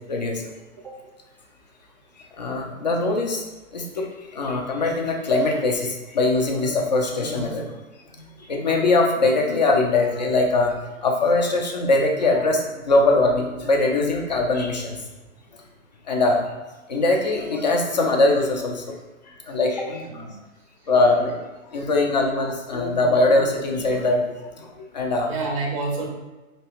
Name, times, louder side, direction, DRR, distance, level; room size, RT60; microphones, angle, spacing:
voice 1, 0.1-0.4 2.4-3.4 3.7-4.1 4.3-7.7 8.5-10.7 11.0-15.0 16.1-16.5 16.9-18.8 19.5-20.0 20.9-21.4 21.7-24.2 24.9-25.3, left 2 dB, 35° left, 1 dB, 0.4 m, -21 dB
voice 2, 19.8-20.4 25.3-26.1, right 3 dB, 25° right, 0 dB, 0.5 m, -29 dB
4.3 x 2.9 x 2.8 m, 1.1 s
hypercardioid pair, 150°, 42 cm